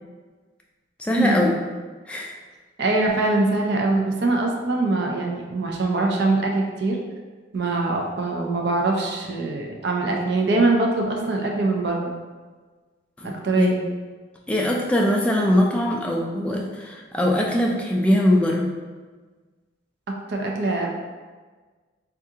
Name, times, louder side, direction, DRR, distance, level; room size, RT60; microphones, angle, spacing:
voice 1, 1.0-1.5 2.1-2.3 13.2-13.7 14.5-18.7, left 1 dB, 5° left, -1 dB, 0.3 m, -21 dB
voice 2, 2.8-7.0 7.5-12.2 13.4-13.8 20.3-20.9, right 2 dB, 60° right, 0 dB, 0.4 m, -23 dB
3.5 x 2.4 x 2.7 m, 1.4 s
head